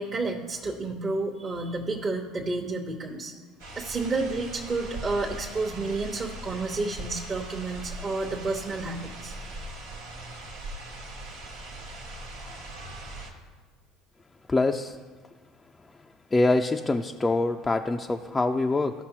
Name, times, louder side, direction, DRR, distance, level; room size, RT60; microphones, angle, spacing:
voice 1, 0.0-3.3 3.8-9.6, right 3 dB, 35° right, -3 dB, 1.0 m, -30 dB
sound 1, 3.6-13.3, right 1 dB, 85° right, 1.4 m, -40 dB
voice 2, 14.5-14.9 16.3-18.9, left 2 dB, 20° left, 3 dB, 0.4 m, -24 dB
14.0 x 5.9 x 2.9 m, 1.4 s
hypercardioid pair, 75°, 0 cm